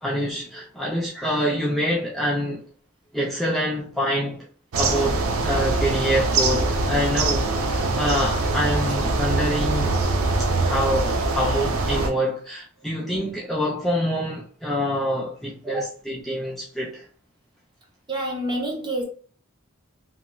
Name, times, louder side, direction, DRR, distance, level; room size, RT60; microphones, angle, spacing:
voice 1, 0.0-2.7 3.1-4.5 4.8-10.0 10.6-17.0, equal, ahead, 0.5 m, -26 dB
sound 1, 4.7-12.1, right 3 dB, 90° right, 0.5 m, -23 dB
voice 2, 18.1-19.0, right 1 dB, 20° right, 0.8 m, -27 dB
2.9 x 2.8 x 2.2 m
head